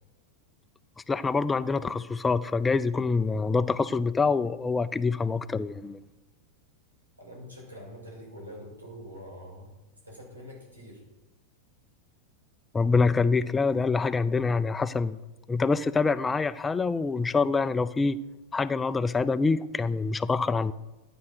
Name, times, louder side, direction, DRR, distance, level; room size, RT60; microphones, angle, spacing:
voice 1, 1.1-6.0 12.7-15.2 15.5-18.2 18.5-20.7, left 4 dB, 15° left, 15 dB, 0.5 m, -25 dB
voice 2, 7.2-9.7 10.0-11.0, equal, 80° right, -1 dB, 5.9 m, -45 dB
12.5 x 8.8 x 6.4 m, 1.1 s
figure-of-eight pair, 90°, 0 cm